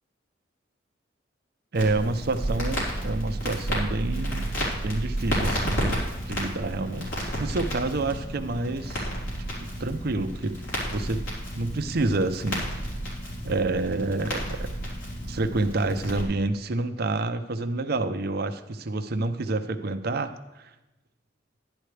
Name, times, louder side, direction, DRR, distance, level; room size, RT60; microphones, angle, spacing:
Crackle, 1.7-16.2, equal, 80° left, 3.9 m, -31 dB
voice 1, 1.7-4.5 4.8-9.1 9.6-10.5 10.9-11.2 11.6-12.6 13.4-14.7 15.3-20.3 20.6-20.7, right 2 dB, 55° right, 8 dB, 0.7 m, -28 dB
11.5 x 10.5 x 3.3 m, 1.0 s
head